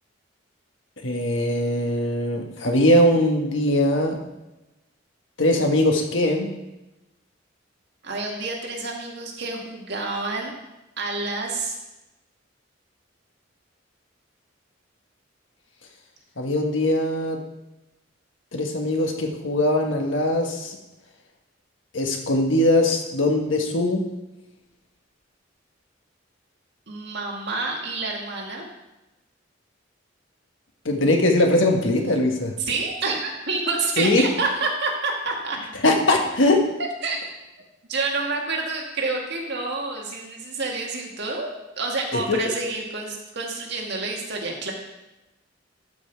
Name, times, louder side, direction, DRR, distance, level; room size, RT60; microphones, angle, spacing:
voice 1, 1.0-4.2 5.4-6.5 16.4-17.4 18.5-20.7 21.9-24.0 30.8-32.6 34.0-34.2 35.8-36.6 42.1-42.4, left 1 dB, 75° left, 3 dB, 1.4 m, -21 dB
voice 2, 8.0-10.5 11.0-11.8 26.9-28.7 32.6-35.6 36.8-37.2 37.9-44.7, right 3 dB, 60° right, 0 dB, 1.9 m, -28 dB
12.5 x 5.5 x 4.6 m, 1.0 s
head